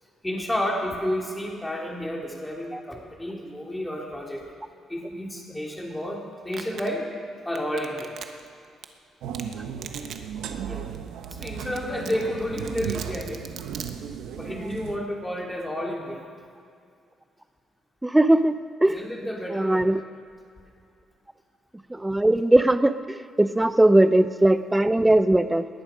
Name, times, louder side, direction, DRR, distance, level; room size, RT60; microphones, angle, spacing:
voice 1, 0.2-4.4 4.9-7.1 7.4-8.1 10.6-10.9 11.3-13.4 14.3-16.3 18.8-19.8, equal, 10° left, -1 dB, 3.2 m, -31 dB
Domestic sounds home sounds, 6.5-6.9 7.6-8.5 8.8-8.9 9.3-9.5 9.8-10.2 10.5-10.6 10.9-11.0 11.2-11.8 12.1-13.9, right 8 dB, 65° right, 1.1 m, -38 dB
sound 1, 9.2-15.0, right 8 dB, 85° right, 0.9 m, -35 dB
voice 2, 18.0-19.0 19.5-20.0 21.9-25.7, right 1 dB, 10° right, 12 dB, 0.7 m, -20 dB
20.0 x 11.0 x 5.2 m, 2.3 s
cardioid pair, 90°, 0 cm